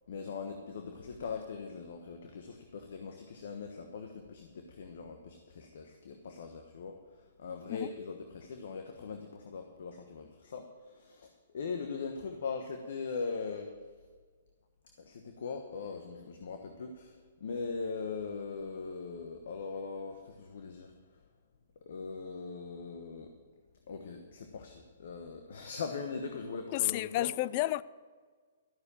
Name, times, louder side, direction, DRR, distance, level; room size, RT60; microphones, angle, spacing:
voice 1, 0.1-13.7 15.0-20.9 21.8-23.3 23.9-27.3, left 5 dB, 65° left, 1.2 m, -41 dB
voice 2, 26.7-27.8, left 17 dB, 40° left, 0.4 m, -31 dB
13.0 x 6.7 x 8.7 m
hypercardioid pair, 130°, 0 cm